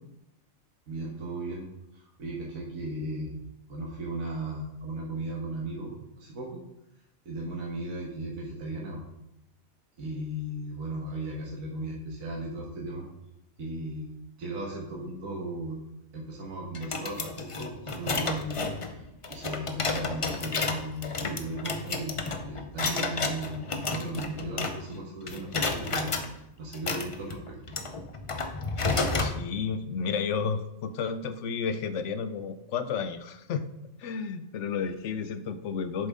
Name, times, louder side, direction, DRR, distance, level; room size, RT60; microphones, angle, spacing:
voice 1, 0.9-1.7 1.9-3.4 3.7-6.6 7.2-9.0 10.0-13.1 13.6-14.1 14.4-15.8 16.1-26.1 26.6-27.6, right 1 dB, 75° right, -2 dB, 1.7 m, -36 dB
sound 1, 16.7-25.0 25.3-26.3 26.7-29.4, left 3 dB, 40° left, 0.4 m, -31 dB
voice 2, 29.2-33.6 34.0-36.1, left 6 dB, 65° left, 11 dB, 0.9 m, -32 dB
7.9 x 7.0 x 3.7 m, 0.83 s
omnidirectional pair, 1.5 m